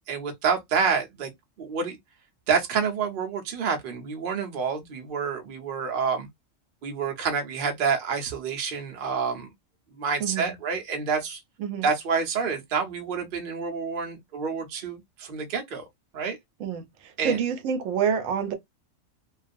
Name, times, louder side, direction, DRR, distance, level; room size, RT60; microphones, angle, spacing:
voice 1, 0.1-1.3 1.6-2.0 2.5-6.3 6.8-9.5 9.9-11.4 11.8-15.8 16.1-16.4 17.2-17.4, right 5 dB, 50° right, 0.7 m, -28 dB
voice 2, 10.2-10.5 11.6-11.9 16.6-18.5, right 7 dB, 80° right, 0.9 m, -27 dB
2.5 x 2.3 x 2.4 m
omnidirectional pair, 1.3 m